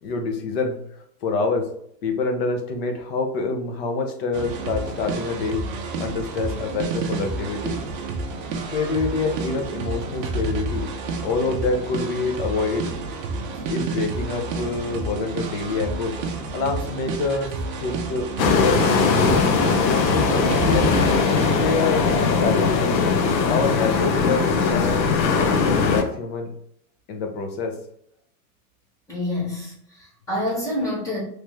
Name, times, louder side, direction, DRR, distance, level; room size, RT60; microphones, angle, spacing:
voice 1, 0.0-1.7 2.0-5.6 6.0-7.8 8.7-10.9 11.2-12.9 13.7-16.2 16.5-19.4 19.9-21.1 21.5-22.1 22.4-23.0 23.5-26.5 27.1-27.8, left 3 dB, 40° left, 4 dB, 0.6 m, -26 dB
sound 1, 4.3-21.7, right 3 dB, 35° right, 0.5 m, -30 dB
sound 2, 18.4-26.0, left 5 dB, 85° left, 0.9 m, -20 dB
voice 2, 29.1-31.2, left 1 dB, 5° left, -5 dB, 1.1 m, -27 dB
3.2 x 3.0 x 3.4 m, 0.69 s
supercardioid pair, 155°, 49 cm